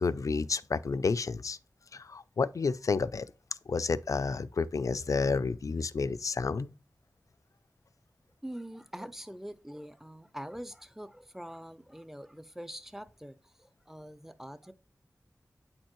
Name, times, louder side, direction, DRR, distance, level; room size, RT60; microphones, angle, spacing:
voice 1, 0.0-1.6 1.9-3.3 3.7-6.7, left 4 dB, 70° left, 0.4 m, -30 dB
voice 2, 8.4-14.7, equal, 5° right, 0.5 m, -44 dB
8.6 x 4.4 x 3.0 m
wide cardioid pair, 65°, 6 cm